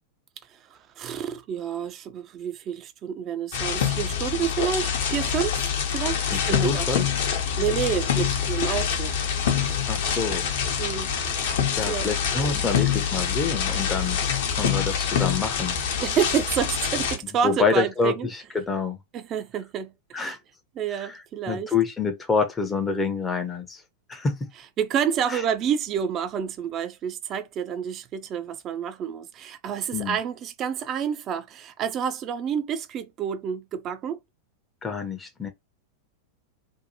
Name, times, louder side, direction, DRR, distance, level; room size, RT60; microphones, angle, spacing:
voice 1, 0.7-5.7 5.9-6.9 7.6-9.1 10.8-11.1 11.9-12.1 16.0-18.3 19.1-20.4 20.8-21.7 24.8-34.2, right 8 dB, 30° right, 0.4 m, -29 dB
sound 1, 3.5-17.2, left 8 dB, 55° left, 0.7 m, -25 dB
voice 2, 6.3-7.0 9.9-10.4 11.8-14.2 14.6-15.7 17.4-19.0 20.1-20.4 20.9-21.2 21.5-23.8 24.1-24.5 25.3-25.4 29.9-30.2 34.8-35.5, left 4 dB, 15° left, 0.6 m, -27 dB
2.7 x 2.2 x 2.8 m
figure-of-eight pair, 90°, 0 cm